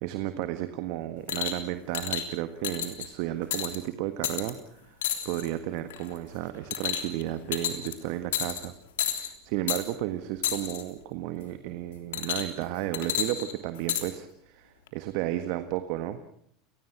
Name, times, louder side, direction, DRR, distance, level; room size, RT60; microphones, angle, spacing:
voice 1, 0.0-4.9 5.2-8.7 9.1-16.2, right 14 dB, 65° right, 10 dB, 1.6 m, -33 dB
sound 1, 1.3-1.6 1.9-2.2 2.6-3.1 3.5-3.8 4.2-4.5 5.0-5.5 5.9-6.2 6.7-7.2 7.5-7.9 8.3-8.7 9.0-9.3 9.7-9.8 10.4-10.8 12.1-12.6 12.9-14.0 14.9-15.0, left 10 dB, 75° left, 3.4 m, -30 dB
30.0 x 19.0 x 6.2 m, 0.66 s
hypercardioid pair, 85°, 0 cm